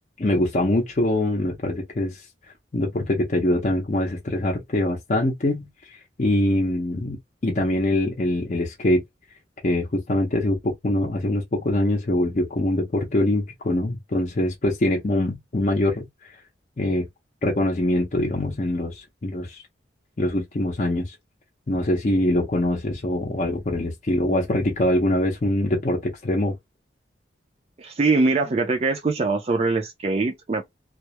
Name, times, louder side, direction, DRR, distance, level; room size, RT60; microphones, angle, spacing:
voice 1, 0.2-2.3 2.7-7.2 7.4-9.0 9.6-16.3 16.8-17.1 17.4-19.6 20.2-21.2 21.7-26.5, left 1 dB, 40° left, 0.5 m, -23 dB
voice 2, 27.8-30.6, right 3 dB, 35° right, 0.4 m, -22 dB
2.2 x 2.0 x 2.8 m
head